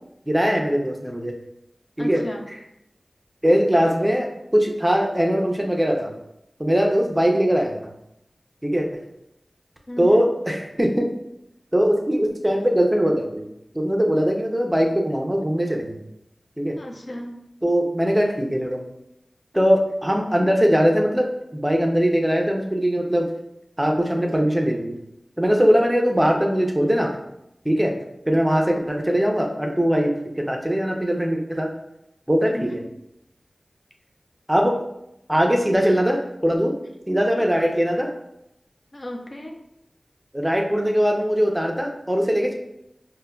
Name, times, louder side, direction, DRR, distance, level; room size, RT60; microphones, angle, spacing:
voice 1, 0.3-1.3 2.0-2.2 3.4-6.1 6.6-7.8 8.6-8.9 10.0-11.1 11.7-13.4 13.7-16.0 16.6-16.8 17.6-18.8 19.5-23.3 23.8-24.9 25.4-27.1 27.6-27.9 28.3-31.7 32.3-32.8 34.5-34.8 35.3-36.7 37.1-38.1 40.3-42.5, equal, 10° right, 2 dB, 0.5 m, -21 dB
voice 2, 2.0-2.4 9.9-10.2 16.8-17.4 32.5-32.8 38.9-39.6, left 1 dB, 45° left, 2 dB, 0.5 m, -34 dB
5.2 x 2.1 x 2.2 m, 0.82 s
wide cardioid pair, 65°, 0 cm